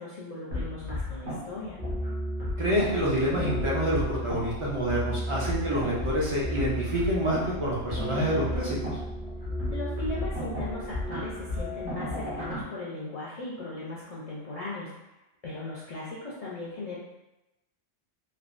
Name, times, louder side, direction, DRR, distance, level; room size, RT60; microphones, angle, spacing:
voice 1, 0.0-1.8 9.7-14.9 15.4-17.0, left 2 dB, 65° left, -7 dB, 0.3 m, -38 dB
sound 1, 0.5-12.6, equal, 70° right, 1.2 m, -33 dB
voice 2, 2.6-9.0, equal, 50° right, -5 dB, 0.3 m, -27 dB
3.3 x 2.0 x 2.4 m, 0.96 s
omnidirectional pair, 1.2 m